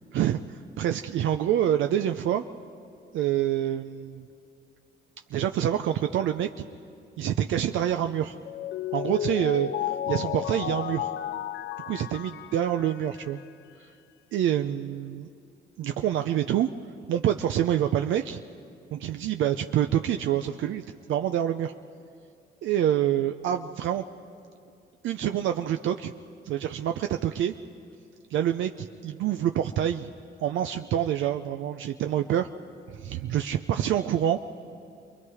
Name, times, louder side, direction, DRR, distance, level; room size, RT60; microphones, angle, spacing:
voice 1, 0.1-2.4 3.1-4.3 5.3-6.5 7.2-8.4 8.9-9.7 10.1-11.1 11.8-13.4 14.3-15.3 15.8-16.7 17.1-18.4 18.9-21.7 22.6-24.1 25.0-26.1 26.5-27.5 28.3-30.1 30.4-32.5 32.9-34.4, right 11 dB, 75° right, 6 dB, 0.6 m, -26 dB
Mallet percussion, 8.5-13.4, left 10 dB, 60° left, 0.6 m, -33 dB
28.5 x 22.0 x 4.9 m, 2.5 s
cardioid pair, 90°, 20 cm